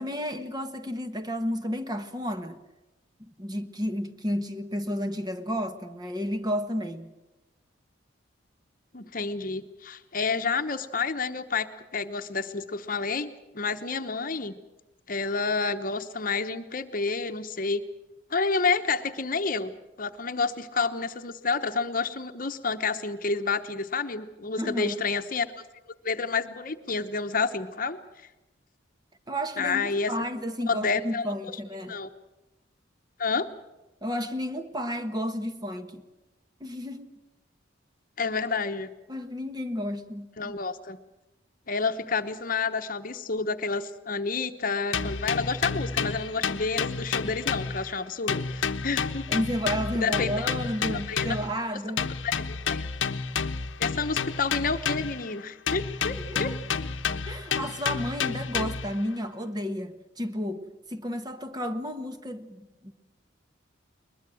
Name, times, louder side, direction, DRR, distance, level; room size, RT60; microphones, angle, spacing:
voice 1, 0.0-2.6 3.2-7.1 24.6-25.0 29.3-31.9 34.0-36.0 36.6-37.2 39.1-40.5 49.3-52.1 56.3-56.8 57.2-62.9, equal, 20° right, 1.3 m, -32 dB
voice 2, 8.9-14.6 15.1-17.8 18.3-19.7 20.0-25.5 26.0-28.0 29.6-30.1 30.7-31.3 31.9-32.1 33.2-33.5 38.2-38.9 40.4-41.0 41.7-49.3 49.9-50.5 50.9-51.3 52.2-52.9 53.8-56.5, left 4 dB, 45° left, 1.0 m, -29 dB
sound 1, 44.9-48.0 48.3-51.6 52.0-55.3 55.7-59.0, left 6 dB, 90° left, 1.0 m, -30 dB
22.0 x 21.0 x 7.7 m
head